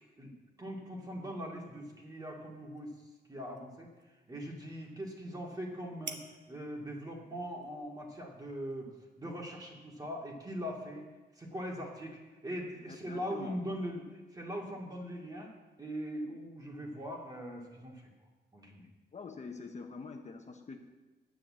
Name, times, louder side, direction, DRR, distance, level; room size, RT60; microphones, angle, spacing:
voice 1, 0.2-2.9 3.3-3.9 4.3-11.0 11.4-15.5 15.8-18.1 18.5-18.9, equal, 20° right, -1 dB, 2.3 m, -41 dB
sound 1, 1.7-9.5, right 5 dB, 80° right, 1.1 m, -54 dB
voice 2, 12.9-13.6 19.1-20.8, left 4 dB, 40° left, 3 dB, 0.9 m, -45 dB
9.7 x 9.2 x 7.4 m, 1.2 s
wide cardioid pair, 160°, 18 cm